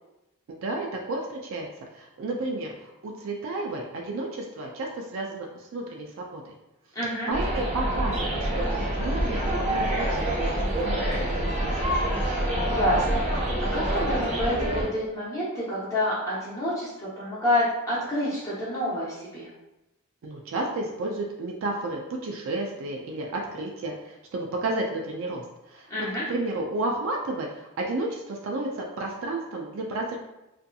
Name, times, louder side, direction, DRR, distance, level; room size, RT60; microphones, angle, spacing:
voice 1, 0.5-1.7 1.9-6.5 7.3-12.2 20.2-30.2, right 2 dB, 60° right, 0 dB, 0.3 m, -32 dB
voice 2, 6.9-7.3 12.7-13.5 13.7-19.5 25.9-26.2, left 1 dB, 15° left, -9 dB, 0.7 m, -28 dB
sound 1, 7.3-14.8, right 1 dB, 30° right, 0.7 m, -26 dB
2.6 x 2.5 x 2.2 m, 0.95 s
head